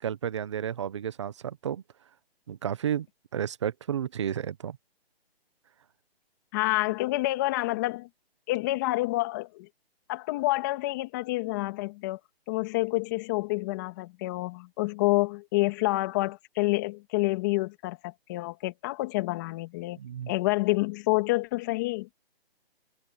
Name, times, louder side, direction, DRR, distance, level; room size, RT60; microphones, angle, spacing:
voice 1, 0.0-1.8 2.5-3.1 3.3-4.8 20.0-20.3, right 9 dB, 30° right, 1.0 m, -32 dB
voice 2, 6.5-8.1 8.5-9.7 10.1-12.2 12.5-20.0 20.3-22.1, left 20 dB, 20° left, 2.5 m, -28 dB
hypercardioid pair, 170°, 31 cm